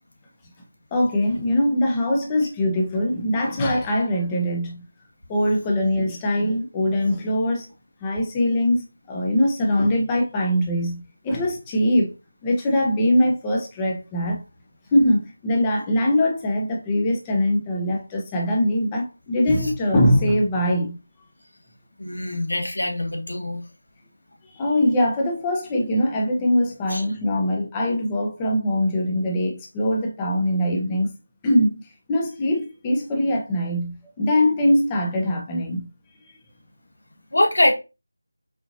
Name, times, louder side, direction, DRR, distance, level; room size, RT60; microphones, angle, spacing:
voice 1, 0.9-4.8 5.3-7.7 8.0-12.1 12.4-14.4 14.9-21.0 24.5-31.1 31.4-31.8 32.1-35.9, left 1 dB, 10° left, 0.6 m, -22 dB
voice 2, 22.0-23.6 26.9-27.1 37.3-37.7, left 1 dB, 70° left, 1.2 m, -23 dB
4.3 x 2.8 x 2.6 m
figure-of-eight pair, 170°, 0 cm